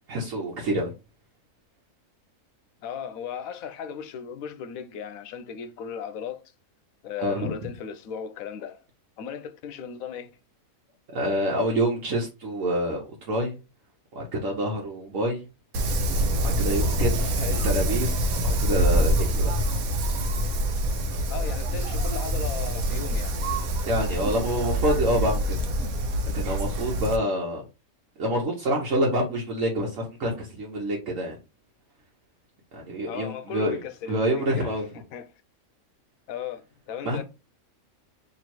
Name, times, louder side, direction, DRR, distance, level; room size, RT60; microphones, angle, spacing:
voice 1, 0.1-0.9 7.2-7.7 11.1-13.5 14.1-15.4 16.4-19.5 23.8-25.7 26.3-27.6 28.2-31.4 32.7-33.8 34.1-34.9 37.0-37.2, right 1 dB, 70° right, 1.3 m, -27 dB
voice 2, 2.8-6.4 7.0-8.8 9.2-10.3 17.4-17.7 21.3-23.4 33.1-35.3 36.3-37.2, left 7 dB, 85° left, 1.0 m, -36 dB
Wind, 15.7-27.2, equal, 90° right, 1.2 m, -25 dB
3.1 x 3.0 x 4.2 m
omnidirectional pair, 1.5 m